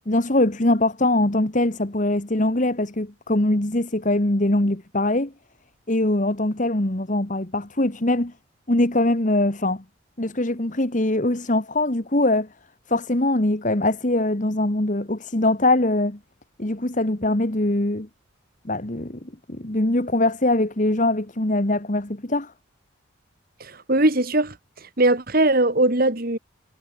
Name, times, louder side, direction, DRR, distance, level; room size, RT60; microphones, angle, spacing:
voice 1, 0.1-5.3 5.9-8.3 8.7-9.8 10.2-12.5 12.9-16.2 16.6-18.1 18.6-22.5, left 1 dB, 40° left, 1.7 m, -22 dB
voice 2, 23.6-24.6 25.0-26.4, right 2 dB, 45° right, 2.2 m, -20 dB
head